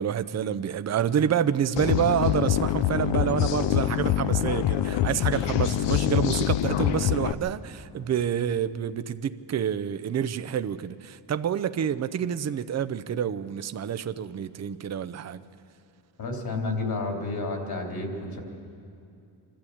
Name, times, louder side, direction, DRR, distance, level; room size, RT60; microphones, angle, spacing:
voice 1, 0.0-15.4, right 8 dB, 40° right, 12 dB, 0.6 m, -28 dB
sound 1, 1.8-7.3, left 12 dB, 90° left, 0.7 m, -25 dB
voice 2, 16.2-18.4, left 3 dB, 55° left, 1 dB, 3.6 m, -31 dB
25.5 x 13.0 x 8.6 m, 2.6 s
cardioid pair, 115°, 42 cm